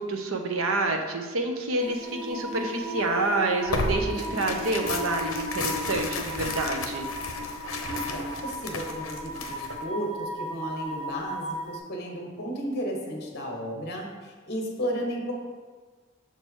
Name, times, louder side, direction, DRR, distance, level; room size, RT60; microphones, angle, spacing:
voice 1, 0.0-7.1, right 2 dB, 90° right, 3 dB, 0.8 m, -28 dB
sound 1, 1.8-11.8, equal, 20° right, 0.7 m, -36 dB
Tearing, 3.7-9.8, left 3 dB, 85° left, 0.8 m, -33 dB
voice 2, 7.9-15.3, equal, 55° left, 1 dB, 1.4 m, -33 dB
6.7 x 4.7 x 4.6 m, 1.4 s
head